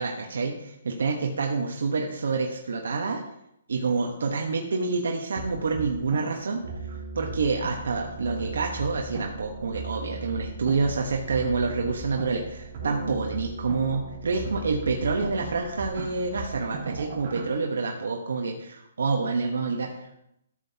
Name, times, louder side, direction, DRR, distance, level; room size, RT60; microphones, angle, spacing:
voice 1, 0.0-3.2 3.7-6.6 7.1-20.2, right 4 dB, 90° right, 2 dB, 1.1 m, -28 dB
sound 1, 5.4-17.5, right 3 dB, 35° right, 2.8 m, -37 dB
13.0 x 7.6 x 2.8 m, 0.79 s
hypercardioid pair, 175°, 0 cm